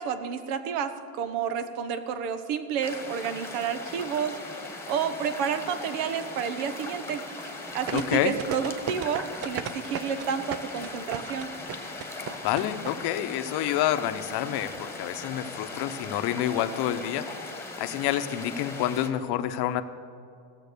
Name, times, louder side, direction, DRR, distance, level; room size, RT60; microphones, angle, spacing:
voice 1, 0.0-4.4 4.9-11.5, right 7 dB, 80° right, 11 dB, 1.2 m, -30 dB
sound 1, 2.8-19.1, left 2 dB, 5° left, 1.4 m, -39 dB
voice 2, 7.9-8.3 12.4-17.3 17.8-19.8, left 12 dB, 55° left, 10 dB, 0.8 m, -28 dB
sound 2, 7.9-12.9 13.2-13.3, right 9 dB, 35° right, 0.5 m, -34 dB
16.0 x 7.4 x 6.7 m, 2.5 s
cardioid pair, 135°, 46 cm